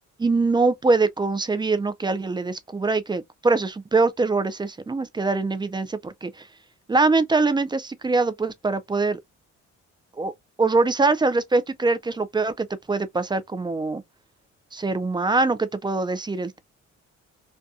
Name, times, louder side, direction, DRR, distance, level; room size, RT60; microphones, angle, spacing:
voice 1, 0.2-6.5 6.9-9.2 10.2-10.3 10.6-14.0 14.7-16.6, right 3 dB, 15° right, 0.3 m, -23 dB
2.7 x 2.2 x 2.3 m
cardioid pair, 90°, 30 cm